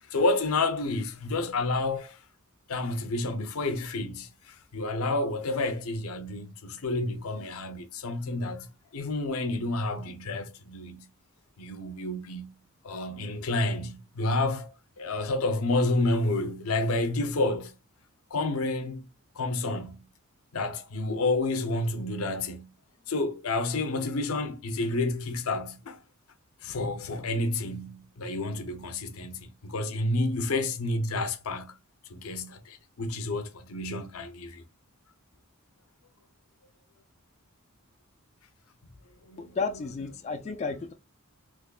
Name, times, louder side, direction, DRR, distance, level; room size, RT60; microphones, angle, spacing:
voice 1, 0.1-2.2 2.7-8.7 8.9-11.0 11.6-12.5 12.8-17.7 18.3-19.1 19.4-20.0 20.5-22.7 23.1-26.0 26.6-31.7 32.1-34.6 39.3-39.4, left 2 dB, 75° left, 0.6 m, -30 dB
voice 2, 39.4-40.9, left 4 dB, 30° left, 0.3 m, -32 dB
3.5 x 3.1 x 2.3 m
head